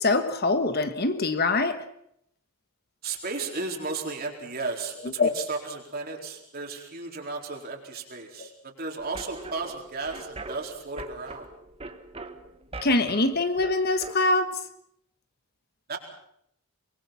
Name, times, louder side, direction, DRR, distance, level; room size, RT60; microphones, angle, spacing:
voice 1, 0.0-1.8 5.2-5.3 8.4-8.5 12.8-14.6, left 2 dB, 45° left, 1.4 m, -24 dB
voice 2, 3.0-11.5 15.9-16.0, right 3 dB, 45° right, 4.3 m, -34 dB
sound 1, 9.0-14.2, right 2 dB, 25° right, 1.4 m, -42 dB
24.0 x 23.0 x 6.0 m
head